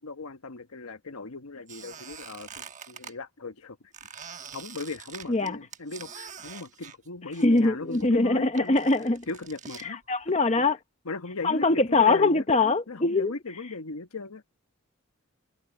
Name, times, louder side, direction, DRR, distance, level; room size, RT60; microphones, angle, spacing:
voice 1, 0.0-3.8 4.5-8.8 9.3-10.0 11.0-12.4 12.9-14.4, left 3 dB, 80° left, 1.2 m, -37 dB
Squeak, 1.7-3.1 3.9-7.6 7.9-9.9, right 7 dB, 35° right, 1.2 m, -45 dB
voice 2, 7.4-9.3 9.8-10.8 11.4-13.3, left 3 dB, 30° left, 0.9 m, -23 dB
head